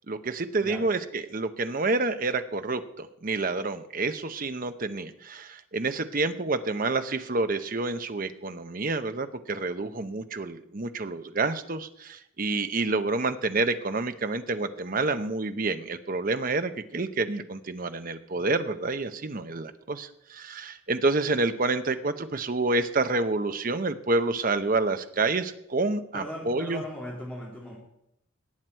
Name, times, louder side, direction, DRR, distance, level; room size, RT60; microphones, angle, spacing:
voice 1, 0.1-26.8, right 3 dB, 40° right, 10 dB, 0.8 m, -28 dB
voice 2, 26.1-27.8, equal, 5° left, -4 dB, 2.6 m, -38 dB
19.0 x 7.8 x 4.5 m, 0.77 s
head